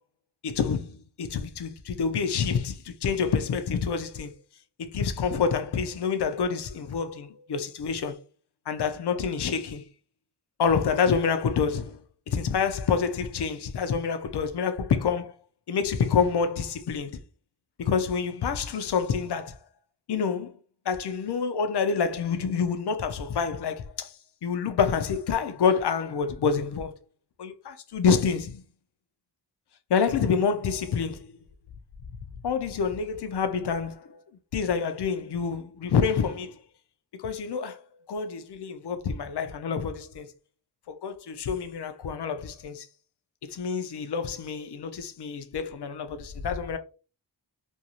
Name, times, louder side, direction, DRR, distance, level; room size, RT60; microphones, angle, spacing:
voice 1, 0.4-4.3 4.8-8.2 8.7-9.8 10.6-15.3 15.7-17.2 17.8-19.6 20.1-20.6 20.9-24.1 24.4-27.0 27.4-28.6 29.9-31.3 32.4-34.2 34.5-36.6 37.1-37.8 38.1-40.3 40.9-42.9 43.4-46.8, left 6 dB, 65° left, 0.5 m, -27 dB
2.6 x 2.3 x 2.9 m
wide cardioid pair, 65°, 44 cm